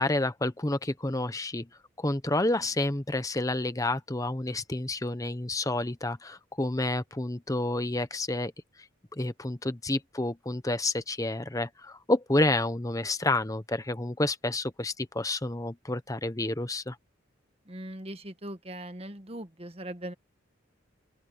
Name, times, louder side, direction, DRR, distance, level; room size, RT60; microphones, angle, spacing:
voice 1, 0.0-1.7 2.0-8.5 9.2-17.0, left 2 dB, 20° left, 1.0 m, -29 dB
voice 2, 17.7-20.1, right 1 dB, 30° right, 1.4 m, -40 dB
open air
head